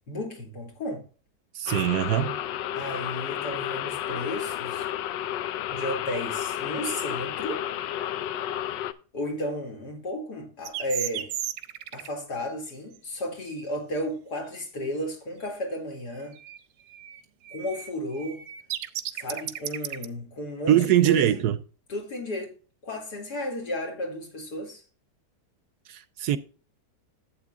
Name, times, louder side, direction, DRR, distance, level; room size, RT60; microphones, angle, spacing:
voice 1, 0.1-1.0 2.7-4.9 5.7-7.6 9.1-11.3 11.9-16.4 17.5-18.4 19.1-21.4 21.9-22.5 22.8-24.8, equal, 65° left, 2.8 m, -33 dB
voice 2, 1.5-2.4 20.7-21.6 25.9-26.4, right 12 dB, 70° right, 1.0 m, -22 dB
sound 1, 1.7-8.9, left 11 dB, 90° left, 1.3 m, -32 dB
sound 2, 10.7-12.1 16.4-16.6 16.9-20.1, right 11 dB, 90° right, 1.3 m, -34 dB
12.0 x 8.0 x 2.3 m
omnidirectional pair, 1.9 m